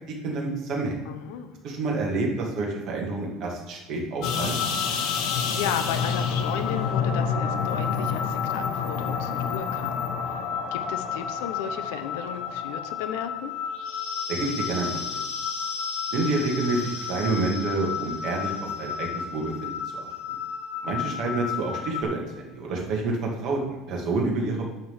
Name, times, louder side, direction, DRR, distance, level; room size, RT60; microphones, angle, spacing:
voice 1, 0.1-1.0 1.6-4.6 14.3-15.0 15.3-15.4 16.1-19.7 20.0-20.1 20.8-24.7, right 3 dB, 45° right, -1 dB, 2.0 m, -28 dB
voice 2, 1.1-1.6 5.1-10.4 10.7-13.5 20.8-21.0 21.2-21.3, left 9 dB, 85° left, 9 dB, 0.8 m, -35 dB
sound 1, 4.2-22.0, left 6 dB, 60° left, 1.1 m, -30 dB
10.5 x 3.7 x 7.1 m, 1.1 s
cardioid pair, 160°, 0 cm